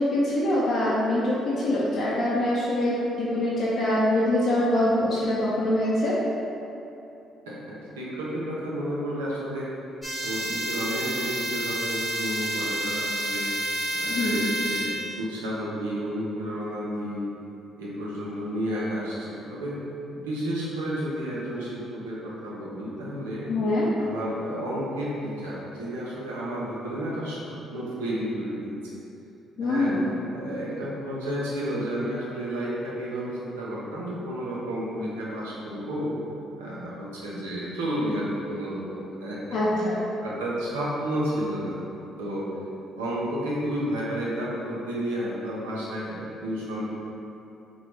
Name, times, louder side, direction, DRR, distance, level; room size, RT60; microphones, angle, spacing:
voice 1, 0.0-6.1 14.1-14.4 23.5-23.9 29.6-30.0 39.5-40.0, left 1 dB, 60° left, -7 dB, 0.7 m, -24 dB
voice 2, 8.0-9.7 10.2-13.5 13.9-17.3 17.8-19.8 20.1-23.5 24.0-29.0 29.6-30.0 30.3-36.1 36.6-41.8 42.2-42.5 42.9-46.8, equal, 85° right, -6 dB, 0.8 m, -31 dB
sound 1, 10.0-15.1, right 1 dB, ahead, 1.3 m, -29 dB
4.0 x 2.4 x 4.5 m, 2.8 s
hypercardioid pair, 50°, 0 cm